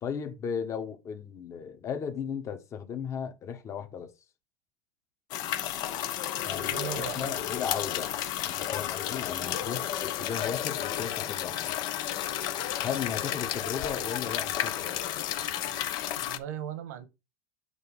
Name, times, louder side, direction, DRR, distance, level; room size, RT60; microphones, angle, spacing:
voice 1, 0.0-4.1 6.4-8.1 8.4-11.7 12.8-15.0, left 7 dB, 35° left, 1.4 m, -36 dB
sound 1, 5.3-16.4, left 11 dB, 50° left, 0.9 m, -32 dB
voice 2, 6.5-7.5 16.3-17.1, right 9 dB, 80° right, 1.5 m, -39 dB
8.2 x 3.0 x 5.5 m
supercardioid pair, 115°, 9 cm